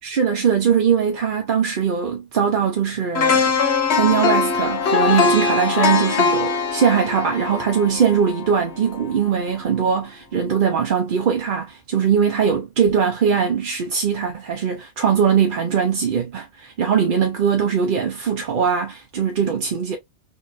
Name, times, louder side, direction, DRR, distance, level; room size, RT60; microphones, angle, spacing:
voice 1, 0.0-3.6 3.9-20.0, right 7 dB, 60° right, 0.7 m, -21 dB
sound 1, 3.1-9.2 9.6-9.7, left 5 dB, 80° left, 1.2 m, -21 dB
3.9 x 3.1 x 2.4 m
omnidirectional pair, 1.1 m